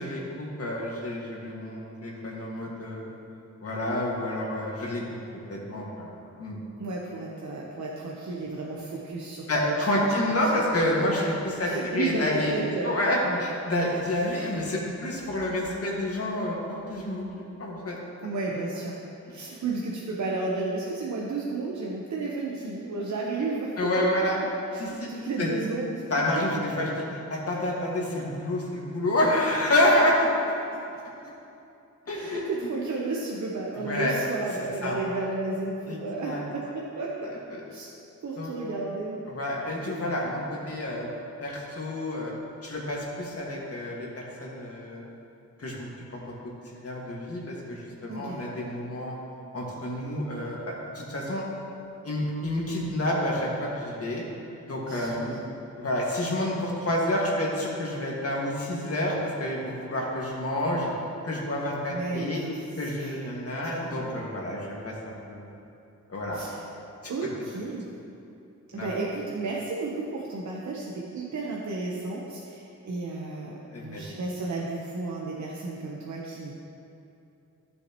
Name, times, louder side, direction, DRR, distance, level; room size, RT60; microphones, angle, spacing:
voice 1, 0.0-3.1 3.6-5.2 5.5-6.1 6.4-6.6 9.5-12.5 12.8-17.2 17.6-18.0 23.8-24.4 24.8-25.1 25.4-25.5 26.1-30.3 32.1-32.7 33.8-34.1 34.8-35.0 35.9-36.0 36.2-36.4 37.5-37.6 38.4-38.5 39.4-41.1 41.4-42.3 42.6-45.0 45.6-49.2 49.5-51.4 52.0-54.2 54.6-55.4 55.8-60.9 61.2-62.4 62.8-64.9 65.3-65.5 66.1-66.5 68.7-68.9 73.7-74.0, left 1 dB, 50° left, -3 dB, 2.0 m, -28 dB
voice 2, 6.8-10.1 11.6-13.4 18.2-19.0 19.3-23.8 24.7-26.0 29.8-29.9 32.1-37.3 37.7-37.9 38.2-39.2 48.1-48.4 54.9-55.6 61.9-64.2 66.3-66.6 67.1-67.9 68.7-76.5, right 3 dB, 65° right, -4 dB, 1.0 m, -33 dB
14.5 x 7.0 x 3.0 m, 2.7 s
wide cardioid pair, 110°, 31 cm